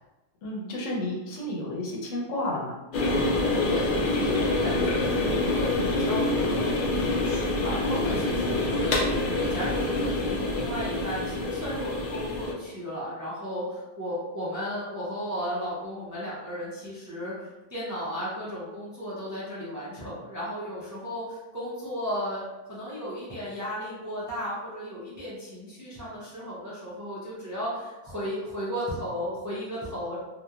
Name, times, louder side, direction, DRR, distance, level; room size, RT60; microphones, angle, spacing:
voice 1, 0.4-2.7, left 1 dB, 85° left, -2 dB, 1.0 m, -31 dB
sound 1, 2.9-12.5, left 2 dB, 60° left, 0.5 m, -26 dB
voice 2, 3.3-3.9 4.2-30.2, equal, 30° right, -8 dB, 0.3 m, -35 dB
2.9 x 2.2 x 2.3 m, 1.1 s
omnidirectional pair, 1.3 m